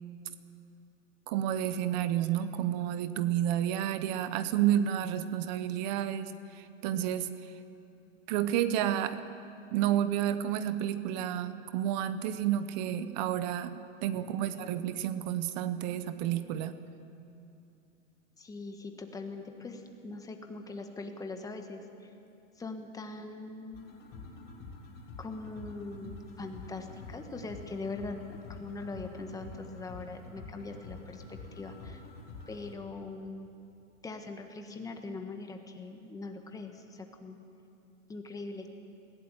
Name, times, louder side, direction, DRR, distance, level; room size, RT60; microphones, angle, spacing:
voice 1, 1.3-7.5 8.3-9.2 9.7-16.8, right 11 dB, 35° right, 12 dB, 0.8 m, -30 dB
voice 2, 14.1-14.8 18.4-22.1 22.6-23.9 25.2-32.0 32.5-33.5 34.0-37.4 38.1-38.7, left 3 dB, 10° left, 5 dB, 1.5 m, -42 dB
sound 1, 23.7-32.7, left 3 dB, 25° left, 3.2 m, -47 dB
20.5 x 16.0 x 9.1 m, 2.7 s
hypercardioid pair, 145°, 39 cm